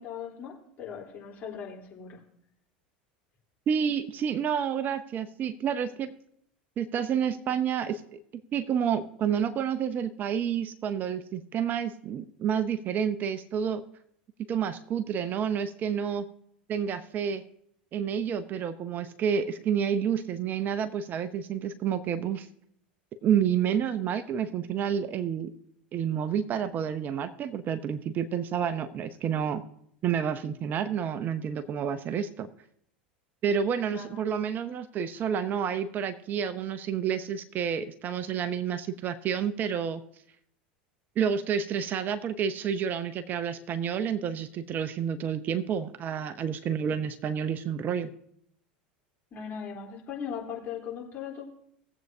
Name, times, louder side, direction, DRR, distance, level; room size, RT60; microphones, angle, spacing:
voice 1, 0.0-2.2 33.9-34.2 49.3-51.5, left 7 dB, 40° left, -1 dB, 3.6 m, -39 dB
voice 2, 3.7-6.1 6.8-8.2 8.5-13.8 14.5-16.3 16.7-17.4 17.9-22.5 23.2-25.5 25.9-29.6 30.0-32.5 33.4-40.0 41.2-48.1, right 8 dB, 40° right, 12 dB, 0.7 m, -29 dB
19.0 x 7.9 x 2.7 m, 0.70 s
hypercardioid pair, 80°, 5 cm